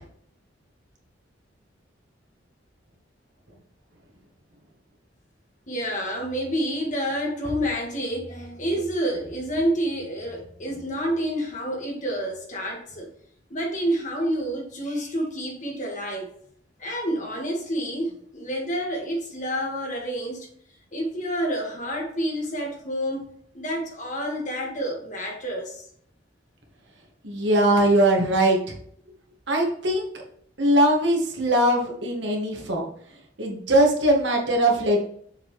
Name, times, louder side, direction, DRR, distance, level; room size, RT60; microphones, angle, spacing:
voice 1, 5.7-13.1 13.5-16.3 16.8-20.5 20.9-25.9, equal, 40° left, 0 dB, 1.8 m, -28 dB
voice 2, 27.2-28.7 29.5-30.1 30.6-32.8 33.4-35.0, right 1 dB, 70° right, 0 dB, 1.8 m, -21 dB
7.0 x 5.2 x 3.2 m, 0.62 s
head